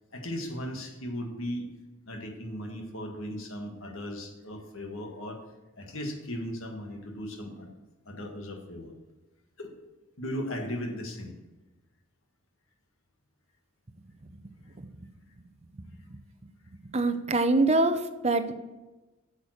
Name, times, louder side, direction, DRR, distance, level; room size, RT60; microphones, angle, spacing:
voice 1, 0.1-1.7 2.1-5.4 5.8-7.7 8.1-8.9 9.6-9.7 10.2-11.3 14.6-14.8, equal, 65° left, 3 dB, 1.7 m, -37 dB
voice 2, 16.9-18.5, right 2 dB, 30° right, 9 dB, 0.6 m, -24 dB
8.4 x 7.3 x 6.4 m, 1.1 s
head